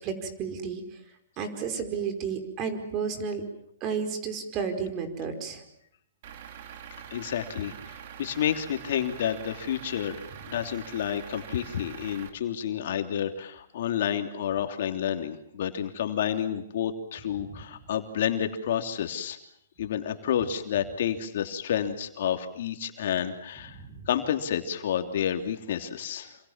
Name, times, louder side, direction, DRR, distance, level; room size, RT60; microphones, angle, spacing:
voice 1, 0.0-0.8 1.4-3.4 3.8-5.6 17.5-17.6 23.7-24.1, right 6 dB, 30° right, 7 dB, 5.1 m, -32 dB
Truck / Idling, 6.2-12.3, right 9 dB, 50° right, 3.9 m, -44 dB
voice 2, 7.1-19.4 19.8-26.4, left 9 dB, 60° left, 6 dB, 3.1 m, -30 dB
28.0 x 26.5 x 7.4 m, 0.71 s
hypercardioid pair, 140°, 0 cm